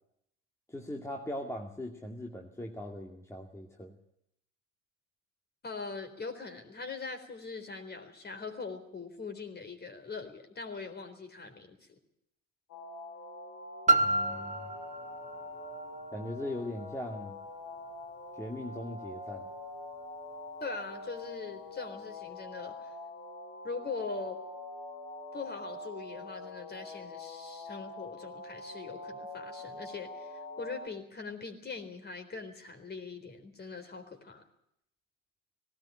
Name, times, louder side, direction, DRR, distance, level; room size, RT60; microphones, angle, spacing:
voice 1, 0.7-4.0 14.0-14.7 16.1-17.4 18.4-19.5, left 1 dB, 5° left, 1 dB, 2.3 m, -40 dB
voice 2, 5.6-12.0 20.6-22.9 23.6-24.4 25.3-34.4, left 4 dB, 25° left, 6 dB, 4.1 m, -42 dB
sound 1, 12.7-30.9, left 2 dB, 45° left, 4.2 m, -44 dB
Piano, 13.9-19.3 20.0-20.1, right 2 dB, 20° right, 2.0 m, -32 dB
18.5 x 18.0 x 8.9 m, 0.76 s
hypercardioid pair, 80°, 40 cm